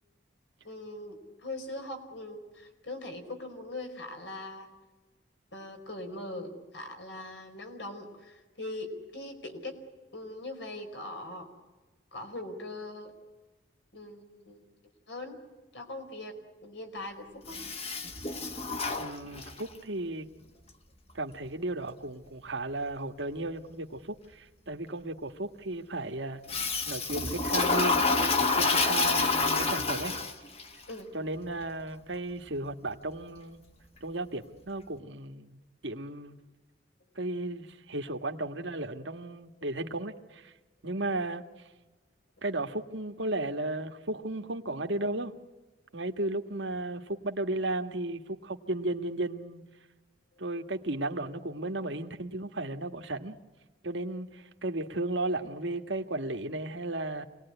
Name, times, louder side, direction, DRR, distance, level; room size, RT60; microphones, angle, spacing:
voice 1, 0.6-4.7 5.5-9.8 10.1-11.5 12.1-13.1 13.9-14.7 15.1-15.4 15.7-17.6 30.9-31.1, left 2 dB, 75° left, 5 dB, 4.7 m, -41 dB
Toilet flush, 17.5-19.7 26.5-30.6, left 3 dB, 30° left, 1.5 m, -28 dB
voice 2, 19.0-20.3 21.1-30.1 31.1-33.6 34.0-35.6 35.8-36.4 37.1-40.5 40.8-41.4 42.4-45.3 45.9-49.6 50.4-53.4 53.8-57.2, right 2 dB, 75° right, 5 dB, 1.5 m, -34 dB
27.0 x 19.5 x 9.9 m, 1.2 s
head